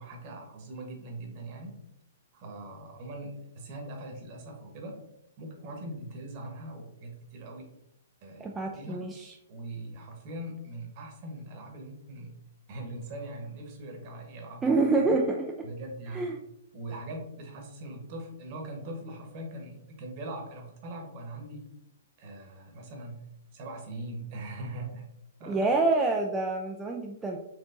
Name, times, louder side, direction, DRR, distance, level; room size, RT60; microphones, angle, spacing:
voice 1, 0.0-1.8 2.3-5.0 5.4-7.7 8.2-8.5 8.7-9.1 9.5-12.3 12.7-15.2 15.6-16.3 16.7-21.7 22.2-23.2 23.5-25.0 25.4-25.7, right 1 dB, 45° right, 1 dB, 1.1 m, -41 dB
voice 2, 8.4-9.4 14.6-15.5 16.1-16.4 25.5-27.4, right 3 dB, 15° right, 0 dB, 0.3 m, -27 dB
4.4 x 2.8 x 2.5 m, 0.80 s
hypercardioid pair, 135°, 0 cm